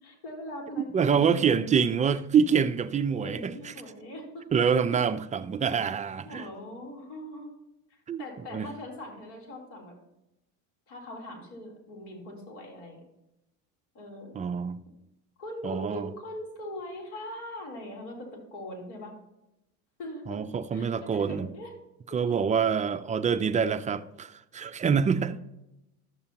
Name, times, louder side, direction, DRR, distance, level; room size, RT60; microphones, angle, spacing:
voice 1, 0.0-1.6 3.2-4.4 6.2-7.5 7.9-10.0 10.9-13.0 13.9-14.4 15.4-19.1 20.0-20.4 20.7-21.7 22.3-22.5 25.0-25.4, left 1 dB, 65° left, 3.4 m, -41 dB
voice 2, 0.9-3.5 4.5-6.5 8.1-8.2 8.5-8.7 14.3-14.8 15.6-16.1 20.3-21.5 22.1-25.4, right 6 dB, 20° right, 0.3 m, -26 dB
12.5 x 6.7 x 2.9 m
supercardioid pair, 85°, 42 cm